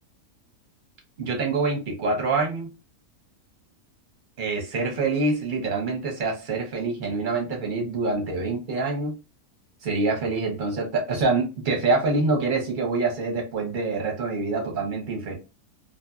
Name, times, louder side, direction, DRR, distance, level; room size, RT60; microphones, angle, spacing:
voice 1, 1.2-2.7 4.4-9.1 9.8-15.3, right 3 dB, 40° right, 1 dB, 0.9 m, -26 dB
2.6 x 2.5 x 2.3 m, 0.28 s
omnidirectional pair, 1.6 m